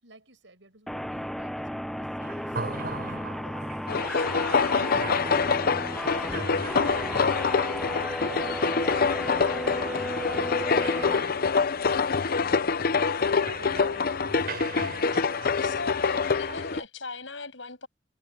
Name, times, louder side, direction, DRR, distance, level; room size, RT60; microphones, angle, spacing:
voice 1, 0.0-3.6 4.3-8.6 9.3-14.2, right 2 dB, 75° right, 7.3 m, -53 dB
sound 1, 0.9-11.2, equal, ahead, 0.4 m, -34 dB
sound 2, 2.2-16.9, right 3 dB, 55° right, 5.7 m, -42 dB
sound 3, 3.9-16.8, left 5 dB, 55° left, 0.7 m, -26 dB
voice 2, 15.6-17.9, left 3 dB, 85° left, 7.9 m, -38 dB
head